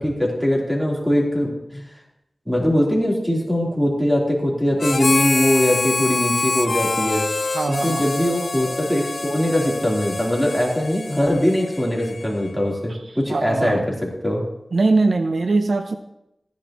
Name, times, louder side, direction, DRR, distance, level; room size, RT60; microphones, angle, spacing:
voice 1, 0.0-1.8 2.5-7.2 7.8-14.4, equal, 5° right, -3 dB, 3.5 m, -21 dB
Harmonica, 4.8-12.5, left 3 dB, 75° left, 0.8 m, -26 dB
voice 2, 7.5-8.1 13.3-13.8 14.7-16.0, right 3 dB, 80° right, 8 dB, 0.7 m, -21 dB
14.5 x 10.5 x 3.0 m, 0.85 s
wide cardioid pair, 60°, 0 cm